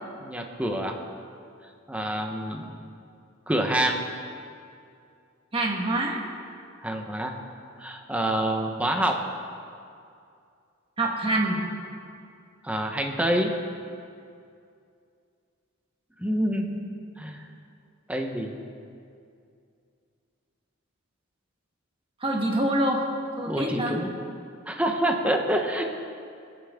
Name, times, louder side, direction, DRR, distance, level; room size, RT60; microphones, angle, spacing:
voice 1, 0.2-0.9 1.9-2.7 3.5-4.0 6.8-7.3 7.8-9.1 12.6-13.5 16.2-16.7 17.2-17.4 18.1-18.5 23.5-24.1 24.7-25.8, right 1 dB, 5° right, 2 dB, 1.1 m, -27 dB
voice 2, 5.5-6.2 11.0-11.6 16.4-16.8 22.2-23.0 23.4-24.0, right 1 dB, 25° right, 0 dB, 1.7 m, -26 dB
25.5 x 9.3 x 3.8 m, 2.4 s
head